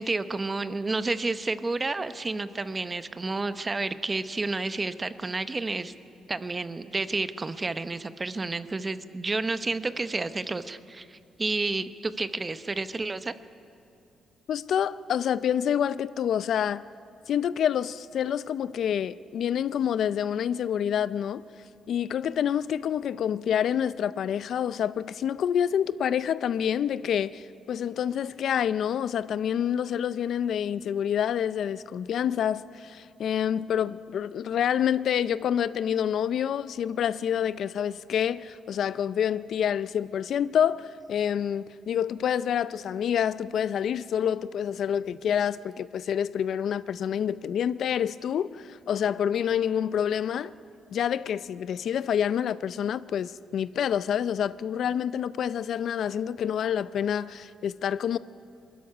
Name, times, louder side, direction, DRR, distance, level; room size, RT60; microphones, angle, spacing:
voice 1, 0.0-5.9 6.3-13.3, right 3 dB, 25° right, 0.8 m, -30 dB
voice 2, 14.5-16.8 17.3-21.4 21.9-50.5 50.9-58.2, left 9 dB, 65° left, 0.4 m, -27 dB
22.0 x 13.5 x 9.7 m
cardioid pair, 90°, 0 cm